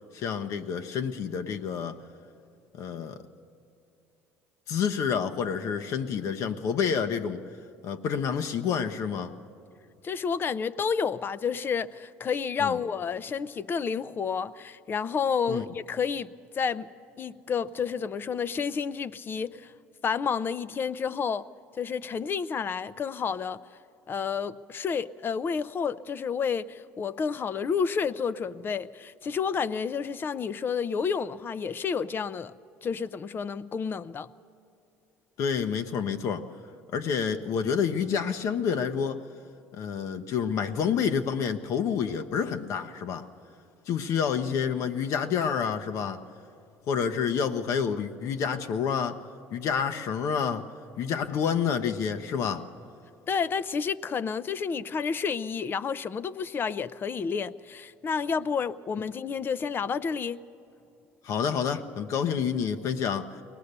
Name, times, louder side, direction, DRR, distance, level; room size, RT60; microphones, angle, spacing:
voice 1, 0.1-2.0 2.7-3.2 4.7-7.4 7.8-9.3 12.6-12.8 15.5-15.6 35.4-36.5 36.9-39.2 39.8-43.3 43.9-46.2 46.9-49.2 49.5-50.7 51.0-52.7 61.2-63.4, left 7 dB, 60° left, 0.9 m, -28 dB
voice 2, 10.0-16.9 17.2-19.7 20.0-21.5 21.8-23.6 24.1-32.5 32.8-34.3 53.3-60.4, left 6 dB, 35° left, 0.6 m, -30 dB
22.5 x 18.5 x 6.7 m
supercardioid pair, 90°, 6 cm